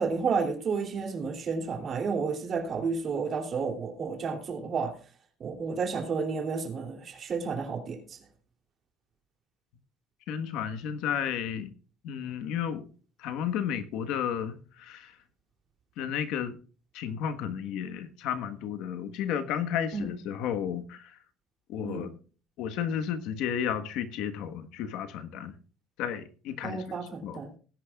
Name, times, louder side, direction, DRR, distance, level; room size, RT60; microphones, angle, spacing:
voice 1, 0.0-4.9 5.4-8.0 19.9-20.0 21.8-22.1 26.6-27.5, right 5 dB, 35° right, 3.0 m, -31 dB
voice 2, 10.3-11.7 12.0-12.9 13.2-15.1 16.0-16.6 16.9-21.1 21.7-22.1 22.6-25.5 26.0-27.4, left 8 dB, 70° left, 1.3 m, -32 dB
19.0 x 10.5 x 2.4 m
cardioid pair, 140°, 0 cm